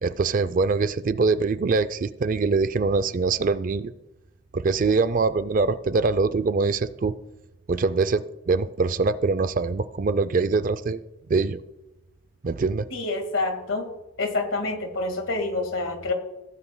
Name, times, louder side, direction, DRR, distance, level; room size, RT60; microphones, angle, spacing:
voice 1, 0.0-3.9 4.5-7.1 7.7-11.0 11.3-11.6 12.4-12.9, right 4 dB, 40° right, 15 dB, 0.4 m, -23 dB
voice 2, 12.9-13.9 14.2-16.1, left 2 dB, 80° left, 5 dB, 1.8 m, -27 dB
16.5 x 9.0 x 2.2 m, 1.0 s
head